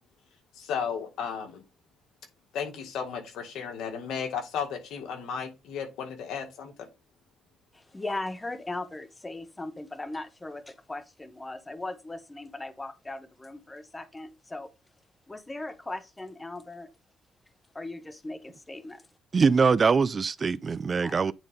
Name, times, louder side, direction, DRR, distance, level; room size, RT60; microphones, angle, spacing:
voice 1, 0.5-1.6 2.5-6.9, left 7 dB, 80° left, 1.9 m, -34 dB
voice 2, 7.7-14.7 15.3-16.9 17.7-19.0 21.0-21.2, left 2 dB, 15° left, 1.0 m, -38 dB
voice 3, 19.3-21.3, right 5 dB, 40° right, 0.4 m, -23 dB
9.0 x 3.9 x 3.6 m
cardioid pair, 90°, 0 cm